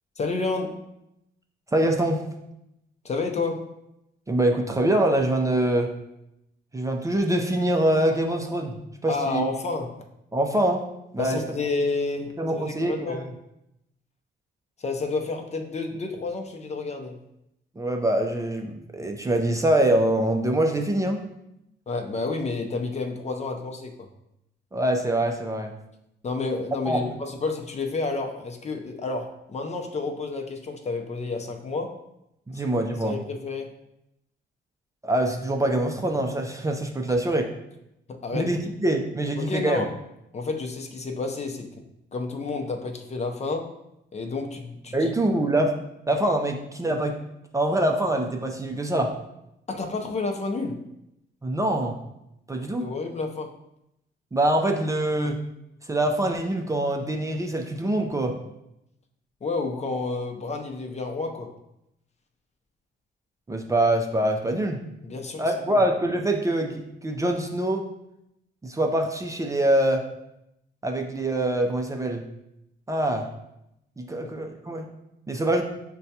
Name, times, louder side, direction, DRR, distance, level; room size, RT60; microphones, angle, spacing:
voice 1, 0.2-0.8 3.0-3.6 9.1-10.0 11.2-13.2 14.8-17.2 21.9-23.9 26.2-32.0 32.5-33.7 38.1-38.5 39.4-39.9 40.3-41.8 42.1-43.7 44.1-45.1 49.7-50.8 52.6-53.5 59.4-61.5 65.0-65.8 74.2-74.3, left 3 dB, 35° left, 3 dB, 0.6 m, -30 dB
voice 2, 1.7-2.2 4.3-5.9 6.7-8.7 9.0-9.4 10.3-10.9 11.1-11.4 12.4-13.2 17.8-21.2 24.7-25.7 26.9-27.0 32.5-33.2 35.0-37.4 38.3-39.8 44.9-45.8 46.1-47.2 47.5-49.1 51.4-52.0 52.5-52.9 54.3-55.4 55.9-58.4 63.5-64.8 65.4-67.9 68.6-70.1 70.8-72.2 72.9-73.3 74.0-74.9 75.3-75.6, right 1 dB, 15° right, 3 dB, 0.5 m, -24 dB
6.2 x 2.2 x 2.8 m, 0.84 s
cardioid pair, 90°, 20 cm